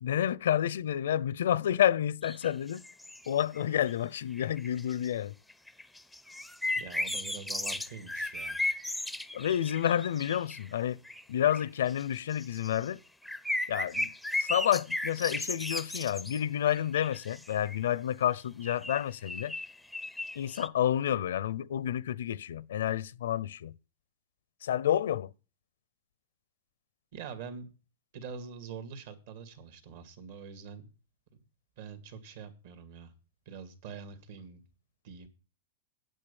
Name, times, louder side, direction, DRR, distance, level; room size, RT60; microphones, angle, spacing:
voice 1, 0.0-2.8 3.3-5.3 9.3-11.0 11.3-13.0 13.7-19.5 20.3-23.7 24.6-25.3, left 10 dB, 85° left, 0.6 m, -29 dB
sound 1, 2.2-3.9 4.4-5.1 5.5-10.7 11.1-11.2 11.5-12.9 13.2-16.4 16.7-17.8 18.6-20.7, left 2 dB, ahead, 0.5 m, -36 dB
voice 2, 6.8-8.6 27.1-27.7 28.1-30.9 31.8-33.1 33.5-34.6 35.0-35.3, right 6 dB, 60° right, 2.3 m, -45 dB
9.0 x 8.2 x 7.0 m
supercardioid pair, 145°, 0 cm